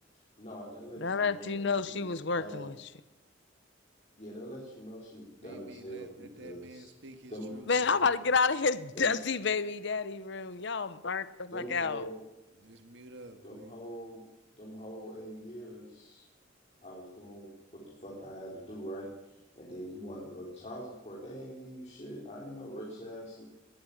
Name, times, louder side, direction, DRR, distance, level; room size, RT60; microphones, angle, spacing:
voice 1, 0.4-2.7 4.2-6.8 7.3-7.6 8.9-9.2 11.5-12.2 13.4-14.3 14.6-16.3 16.8-23.5, equal, 35° left, 4.3 m, -44 dB
voice 2, 1.0-2.7 7.7-12.0, left 4 dB, 65° left, 0.9 m, -29 dB
voice 3, 5.4-8.3 12.5-13.8, right 1 dB, 65° right, 1.9 m, -50 dB
21.5 x 15.5 x 8.8 m
head